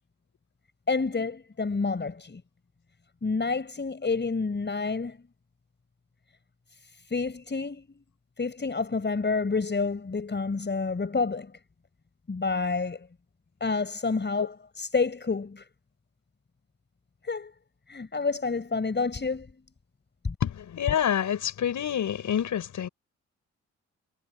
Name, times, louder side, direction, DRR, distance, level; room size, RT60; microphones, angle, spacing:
voice 1, 0.9-2.4 3.2-5.2 7.1-7.9 8.4-11.5 12.3-13.1 13.6-15.7 17.2-17.5 17.9-19.5 20.2-20.3, left 4 dB, 35° left, 5.8 m, -29 dB
voice 2, 20.4-22.9, left 9 dB, 70° left, 6.6 m, -27 dB
supercardioid pair, 60°, 31 cm